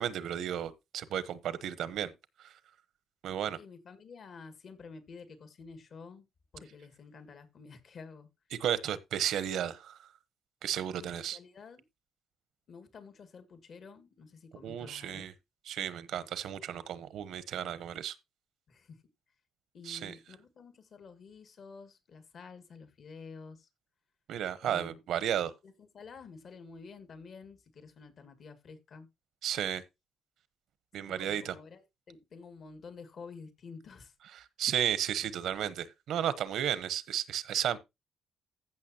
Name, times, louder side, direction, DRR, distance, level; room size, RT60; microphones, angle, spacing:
voice 1, 0.0-2.1 2.4-2.5 3.2-3.6 8.6-10.0 10.6-11.4 14.6-15.3 15.7-18.1 19.8-20.1 24.3-25.5 29.4-29.8 30.9-31.6 34.4-37.8, right 10 dB, 75° right, 1.0 m, -33 dB
voice 2, 3.5-6.2 6.5-8.3 11.0-11.8 12.7-15.3 18.7-19.0 19.7-23.7 24.6-25.0 25.6-29.1 31.1-34.1, left 5 dB, 55° left, 2.1 m, -50 dB
15.0 x 6.1 x 2.8 m
cardioid pair, 90°, 0 cm